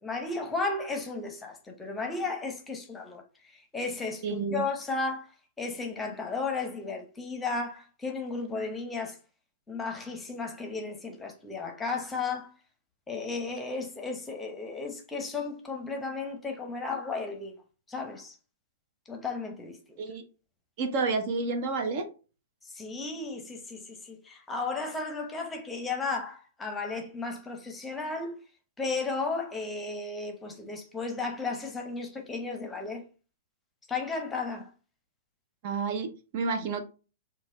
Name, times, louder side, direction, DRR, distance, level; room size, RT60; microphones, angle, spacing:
voice 1, 0.0-3.2 3.5-5.3 5.6-9.2 9.7-12.5 13.1-17.5 17.9-18.4 19.1-20.0 22.6-28.3 28.8-33.0 33.9-34.7, left 3 dB, 10° left, 0.8 m, -34 dB
voice 2, 4.2-4.6 20.0-20.2 20.8-22.1 35.6-36.9, right 4 dB, 50° right, 0.6 m, -30 dB
3.9 x 2.2 x 3.7 m
hypercardioid pair, 120°, 0 cm